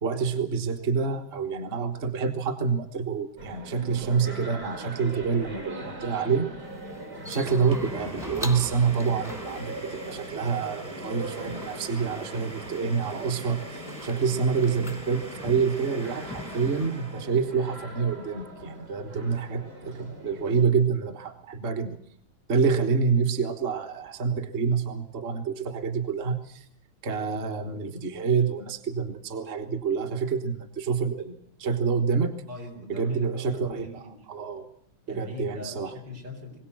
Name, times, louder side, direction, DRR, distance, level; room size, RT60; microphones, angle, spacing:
voice 1, 0.0-6.5 7.3-22.0 22.5-26.6 27.0-32.3 33.0-34.0 34.3-34.7 35.1-35.9, right 5 dB, 35° right, 7 dB, 1.4 m, -27 dB
sound 1, 3.4-20.6, right 1 dB, 55° right, 3.3 m, -41 dB
sound 2, 6.6-16.9, left 1 dB, ahead, 0.8 m, -43 dB
Domestic sounds home sounds, 7.5-17.4, right 1 dB, 20° right, 1.1 m, -45 dB
voice 2, 32.5-34.3 35.1-36.6, left 3 dB, 80° right, 1 dB, 4.5 m, -42 dB
22.0 x 17.0 x 7.6 m, 0.63 s
omnidirectional pair, 2.0 m